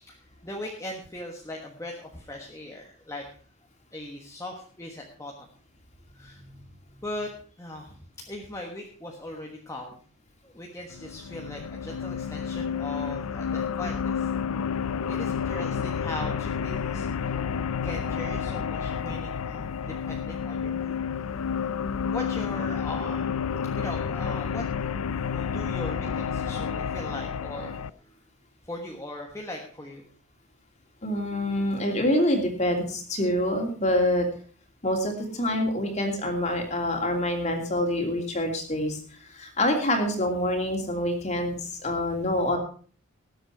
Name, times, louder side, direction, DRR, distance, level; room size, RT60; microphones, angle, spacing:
voice 1, 0.0-3.3 3.9-5.5 6.1-6.4 7.0-7.3 7.6-8.0 8.3-10.0 10.4-14.3 15.1-17.4 17.8-21.0 22.1-23.3 23.8-24.6 25.3-28.2 28.6-30.0, left 1 dB, 15° left, 0 dB, 1.4 m, -39 dB
sound 1, 10.9-27.9, left 7 dB, 85° left, 0.5 m, -30 dB
voice 2, 31.0-34.3 34.8-39.0 39.3-42.6, left 1 dB, 30° left, 2 dB, 2.9 m, -26 dB
19.0 x 7.9 x 4.6 m, 0.43 s
head